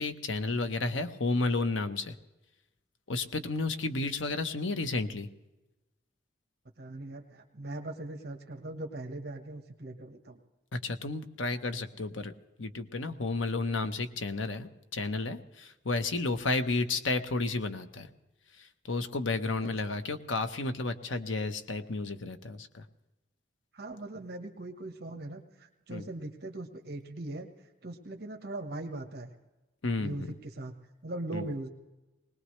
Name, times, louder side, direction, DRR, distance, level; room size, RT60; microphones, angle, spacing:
voice 1, 0.0-2.1 3.1-5.3 10.7-12.3 12.6-18.1 18.9-22.8 25.9-26.0 29.8-30.2 31.3-31.5, left 3 dB, 85° left, 9 dB, 1.1 m, -32 dB
voice 2, 6.8-10.4 23.7-27.5 27.8-29.3 30.0-30.7 31.0-31.7, right 2 dB, 55° right, 4 dB, 1.4 m, -40 dB
20.5 x 19.5 x 3.2 m, 1.0 s
head